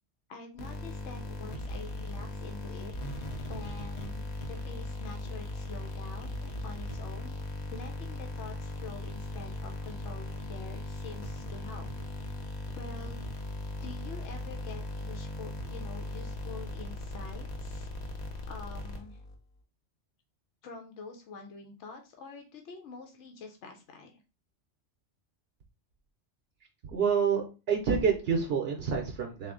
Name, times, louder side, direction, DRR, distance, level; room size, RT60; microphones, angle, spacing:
voice 1, 0.3-2.9 3.5-11.8 12.7-13.3 13.8-17.9 18.5-19.2 20.6-24.2, left 4 dB, 90° left, 4 dB, 1.0 m, -46 dB
sound 1, 0.6-19.4, left 1 dB, 45° left, 0.7 m, -38 dB
voice 2, 26.8-29.5, right 6 dB, 65° right, 2 dB, 0.8 m, -28 dB
3.5 x 2.4 x 3.6 m, 0.32 s
omnidirectional pair, 1.2 m